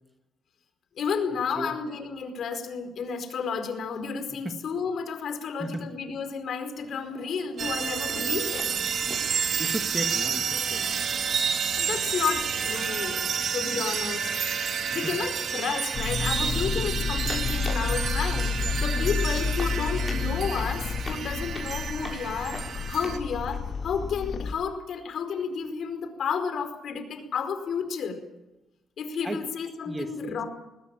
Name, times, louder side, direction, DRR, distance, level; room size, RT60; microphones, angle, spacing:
voice 1, 1.0-8.8 11.7-13.2 13.5-14.3 14.9-28.2 29.0-30.5, left 6 dB, 65° left, 7 dB, 4.7 m, -32 dB
sound 1, 6.8-24.2, left 3 dB, 25° left, 6.9 m, -47 dB
sound 2, 7.6-23.2, right 7 dB, 60° right, 2.2 m, -30 dB
voice 2, 9.1-10.8 13.4-13.5 15.0-15.1 16.7-16.8 18.6-18.8 21.4-21.5 29.2-29.5 29.9-30.4, right 1 dB, 15° right, 7 dB, 2.2 m, -36 dB
sound 3, 15.9-24.5, left 5 dB, 50° left, 2.5 m, -30 dB
21.0 x 20.0 x 9.0 m, 0.95 s
cardioid pair, 90°, 0 cm